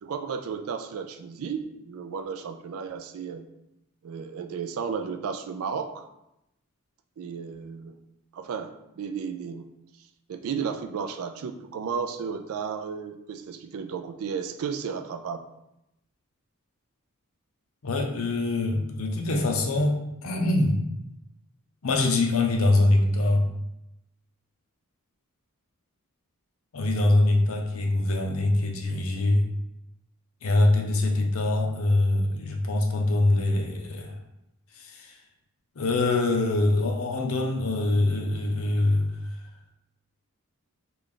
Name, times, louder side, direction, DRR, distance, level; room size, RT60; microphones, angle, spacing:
voice 1, 0.0-3.5 4.0-6.0 7.2-8.0 8.3-9.7 10.3-15.5, right 6 dB, 65° right, 7 dB, 0.3 m, -33 dB
voice 2, 17.8-20.8 21.8-23.5 26.7-29.5 30.4-34.2 34.7-35.2 35.7-39.4, left 2 dB, 65° left, 2 dB, 0.6 m, -24 dB
3.3 x 2.4 x 3.7 m, 0.86 s
head